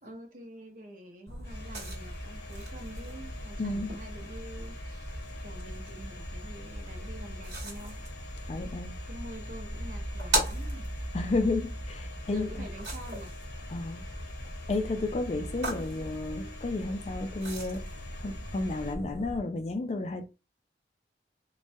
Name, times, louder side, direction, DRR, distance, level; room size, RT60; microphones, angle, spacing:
voice 1, 0.0-5.1 5.4-8.0 9.1-10.9 12.3-13.3, right 1 dB, 50° right, 0.7 m, -46 dB
sound 1, 1.3-19.4, right 1 dB, 70° right, 1.1 m, -38 dB
Domestic sounds home sounds, 1.4-18.9, left 4 dB, 75° left, 0.8 m, -50 dB
voice 2, 3.6-3.9 8.5-8.9 11.1-12.5 13.7-14.0 14.7-17.9 18.2-20.2, left 2 dB, 35° left, 0.3 m, -32 dB
3.1 x 2.2 x 2.6 m
head